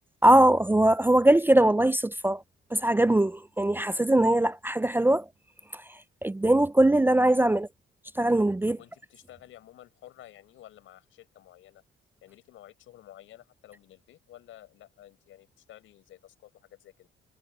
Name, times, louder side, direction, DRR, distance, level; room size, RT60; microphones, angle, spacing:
voice 1, 0.2-2.4 2.7-5.3 5.7-5.8 6.2-7.7 8.2-8.8, right 1 dB, 10° right, 0.5 m, -21 dB
voice 2, 8.7-11.8 12.2-17.1, left 13 dB, 80° left, 6.8 m, -52 dB
cardioid pair, 90°, 20 cm